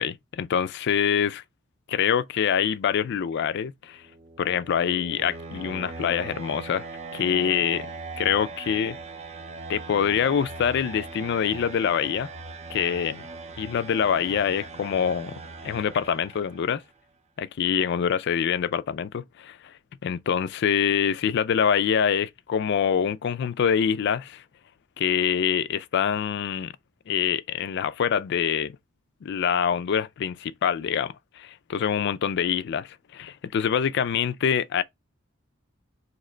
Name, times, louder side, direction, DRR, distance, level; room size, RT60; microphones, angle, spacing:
voice 1, 0.0-1.4 1.9-4.0 4.4-6.9 7.1-7.9 8.2-9.0 9.7-12.3 12.7-13.3 13.6-15.3 15.6-16.8 17.4-19.7 20.0-24.4 25.0-26.7 27.1-28.8 29.2-34.8, left 8 dB, 55° left, 0.3 m, -25 dB
sound 1, 3.9-16.8, right 4 dB, 30° right, 0.5 m, -40 dB
3.2 x 2.9 x 3.7 m
head